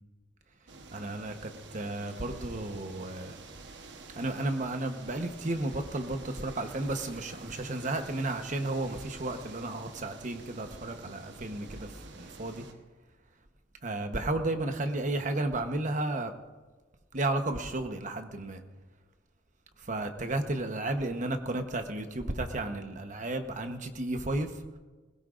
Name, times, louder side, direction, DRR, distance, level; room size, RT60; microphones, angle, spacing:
sound 1, 0.7-12.7, right 3 dB, 70° right, 1.1 m, -48 dB
voice 1, 0.9-3.3 4.2-12.6 13.8-16.3 17.1-18.6 19.8-24.5, right 2 dB, 45° right, 7 dB, 1.0 m, -33 dB
20.5 x 16.5 x 2.5 m, 1.3 s
head